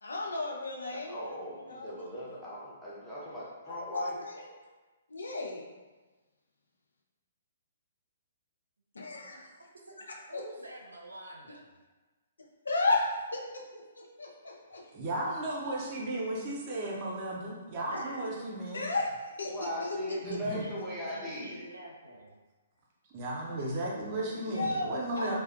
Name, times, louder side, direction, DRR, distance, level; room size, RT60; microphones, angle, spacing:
voice 1, 0.0-2.0 3.7-4.5 5.1-5.7 8.9-9.4 10.1-10.4 12.6-14.9 17.9-18.3 18.7-20.4 23.7-23.8 24.4-25.4, left 2 dB, 75° left, -1 dB, 0.4 m, -34 dB
voice 2, 1.1-4.2 19.5-21.7, equal, 5° left, -10 dB, 0.7 m, -38 dB
voice 3, 10.3-11.6 20.6-22.3, right 1 dB, 80° right, -1 dB, 0.5 m, -48 dB
voice 4, 14.9-18.8 20.2-20.6 23.1-25.4, right 1 dB, 35° right, -3 dB, 0.6 m, -35 dB
2.5 x 2.0 x 2.5 m, 1.3 s
figure-of-eight pair, 125°, 0 cm